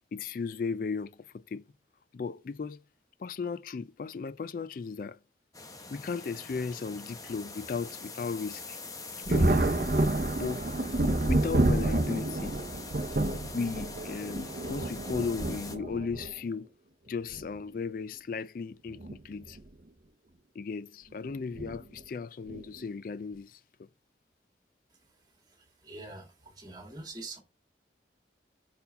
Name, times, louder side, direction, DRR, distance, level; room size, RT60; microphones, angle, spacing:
voice 1, 0.1-1.7 2.1-2.8 3.2-5.2 5.9-8.8 9.3-9.7 10.4-10.6 11.2-12.6 13.5-16.7 17.1-19.6 20.6-23.6, left 5 dB, 50° left, 0.3 m, -36 dB
sound 1, 5.5-15.8, left 3 dB, 20° left, 0.9 m, -44 dB
Thunder, 9.3-16.3 17.3-17.4 18.9-19.1 19.5-19.6 21.6-21.8 22.5-22.8, right 2 dB, 50° right, 0.7 m, -29 dB
voice 2, 25.5-27.4, right 2 dB, 20° right, 1.8 m, -45 dB
5.5 x 4.6 x 5.0 m
head